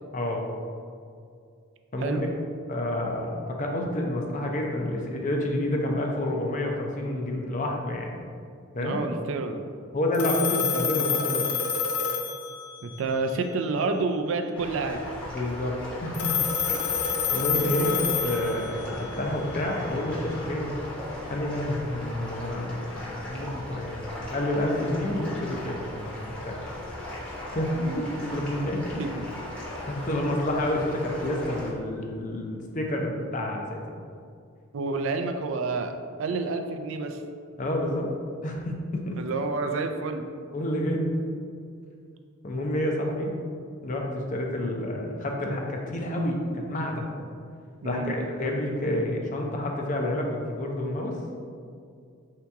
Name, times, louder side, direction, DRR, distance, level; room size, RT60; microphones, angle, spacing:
voice 1, 0.1-0.5 1.9-2.2 2.7-8.2 8.7-9.0 9.9-11.5 15.3-16.3 17.3-20.7 21.3-26.6 27.5-28.9 29.6-33.8 37.6-38.1 38.4-39.2 40.5-41.2 42.4-43.4 43.8-47.2 47.8-51.2, left 1 dB, 35° left, 1 dB, 0.5 m, -29 dB
voice 2, 8.8-9.6 12.8-15.0 27.8-28.0 29.0-29.3 34.7-37.2 39.2-40.3 47.8-48.1, right 3 dB, 60° right, 6 dB, 0.3 m, -29 dB
Telephone, 10.1-13.0 16.1-19.0, left 6 dB, 85° left, 0.5 m, -28 dB
sound 1, 14.6-31.7, left 1 dB, 5° left, 0.8 m, -37 dB
3.5 x 2.8 x 4.5 m, 2.3 s
head